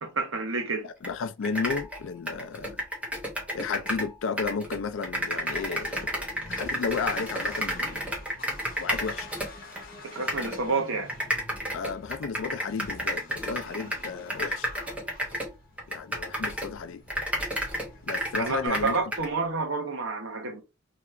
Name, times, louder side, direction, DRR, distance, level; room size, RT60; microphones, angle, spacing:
voice 1, 0.0-0.9 10.1-11.1 18.4-20.6, right 4 dB, 75° right, 0.8 m, -29 dB
voice 2, 0.8-2.8 3.5-6.0 6.5-8.1 8.8-9.3 11.7-14.7 15.9-17.0 18.0-19.0, left 5 dB, 65° left, 0.4 m, -33 dB
sound 1, 1.0-1.1 1.4-4.1 4.4-9.8 10.3-10.6 11.1-16.8 17.1-19.3, equal, 5° right, 0.8 m, -31 dB
Accelerating revving vroom, 5.1-18.7, left 2 dB, 45° left, 0.9 m, -47 dB
2.8 x 2.4 x 3.2 m
head